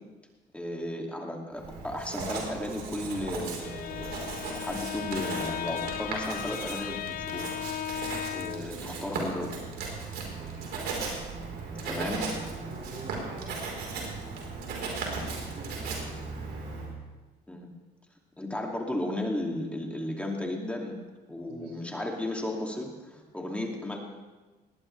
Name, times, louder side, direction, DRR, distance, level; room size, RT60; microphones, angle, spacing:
voice 1, 0.5-4.1 4.4-7.5 8.3-9.5 11.8-12.2 17.5-17.7 18.4-20.9 21.3-24.0, left 1 dB, 5° left, 0 dB, 2.6 m, -34 dB
Writing, 1.6-16.9, right 4 dB, 70° right, 4.3 m, -37 dB
Bowed string instrument, 3.4-8.8, left 12 dB, 55° left, 0.6 m, -36 dB
voice 2, 6.3-6.7 8.5-8.9 10.3-10.9 11.7-12.1 12.6-13.5 14.5-15.8 21.5-21.8, right 3 dB, 85° right, -1 dB, 5.9 m, -47 dB
19.5 x 18.0 x 3.4 m, 1.2 s
cardioid pair, 110°, 17 cm